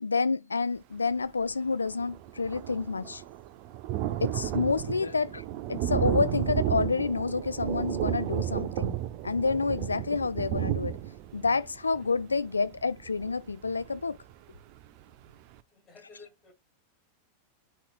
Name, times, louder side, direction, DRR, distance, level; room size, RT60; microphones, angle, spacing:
voice 1, 0.0-3.2 4.2-5.4 5.7-9.0 9.2-11.0 11.3-14.2, left 4 dB, 75° left, 0.3 m, -29 dB
Thunder, 1.4-1.5 1.7-14.3 14.8-14.9 15.2-15.3, right 13 dB, 45° right, 0.5 m, -33 dB
voice 2, 15.7-16.5, left 4 dB, 25° left, 2.5 m, -53 dB
9.7 x 4.3 x 2.4 m
figure-of-eight pair, 90°, 0 cm